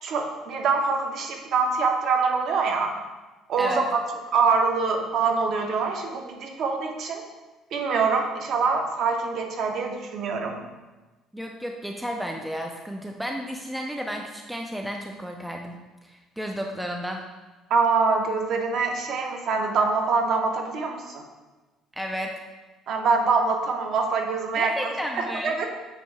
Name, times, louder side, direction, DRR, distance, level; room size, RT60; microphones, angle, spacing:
voice 1, 0.0-2.9 3.5-4.0 4.3-7.2 7.7-10.6 17.7-21.2 22.9-25.6, right 4 dB, 45° right, 3 dB, 0.8 m, -24 dB
voice 2, 11.3-15.8 16.0-17.2 22.0-22.5 24.6-25.6, equal, ahead, 1 dB, 0.3 m, -32 dB
8.0 x 2.7 x 4.8 m, 1.2 s
cardioid pair, 175°, 0 cm